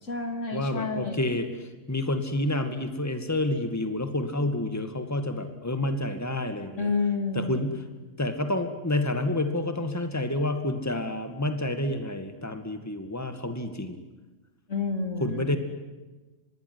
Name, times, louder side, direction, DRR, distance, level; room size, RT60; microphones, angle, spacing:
voice 1, 0.0-1.3 6.8-7.6 14.7-15.5, left 4 dB, 80° left, 6 dB, 3.6 m, -29 dB
voice 2, 0.5-6.9 7.3-7.8 8.2-14.0 15.2-15.6, left 1 dB, 15° left, 8 dB, 2.3 m, -29 dB
25.5 x 21.5 x 9.9 m, 1.2 s
omnidirectional pair, 1.3 m